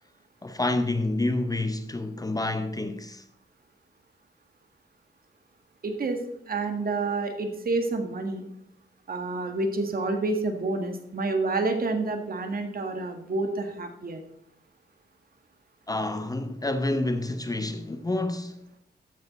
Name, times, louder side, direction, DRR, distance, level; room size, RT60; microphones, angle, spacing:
voice 1, 0.4-3.2 15.9-18.6, left 2 dB, 20° left, 0.8 m, -28 dB
voice 2, 5.8-8.4 9.1-14.2, right 3 dB, 50° right, 1.7 m, -29 dB
13.5 x 6.5 x 4.1 m
wide cardioid pair, 110°, 19 cm